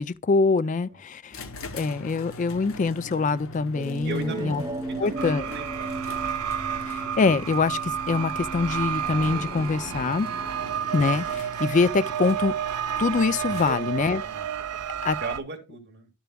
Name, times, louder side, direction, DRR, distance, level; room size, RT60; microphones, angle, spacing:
voice 1, 0.0-1.4 1.7-4.6 5.0-5.5 6.9-10.3 10.9-12.5 13.0-14.2 15.0-15.2, left 4 dB, 35° left, 0.3 m, -24 dB
sound 1, 1.3-14.1, left 2 dB, 65° left, 0.9 m, -43 dB
sound 2, 3.7-11.4, right 2 dB, 20° right, 0.6 m, -37 dB
voice 2, 4.0-4.6 4.9-6.0 10.6-10.9 13.6-14.5 14.7-16.1, right 3 dB, 50° right, 1.9 m, -37 dB
sound 3, 5.2-15.4, right 8 dB, 80° right, 0.6 m, -31 dB
11.5 x 6.9 x 2.3 m
head